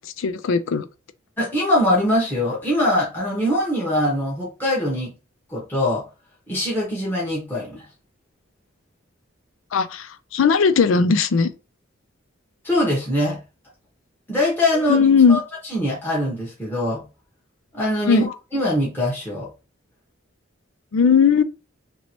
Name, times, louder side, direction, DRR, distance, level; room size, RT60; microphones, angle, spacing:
voice 1, 0.2-0.9 9.7-11.5 14.8-15.4 18.1-18.3 20.9-21.4, left 6 dB, 80° left, 0.4 m, -17 dB
voice 2, 1.4-5.1 5.5-6.0 6.5-7.8 12.6-13.4 14.3-15.4 15.7-17.0 17.7-19.5, left 1 dB, 10° left, 1.0 m, -22 dB
3.0 x 2.8 x 2.9 m
head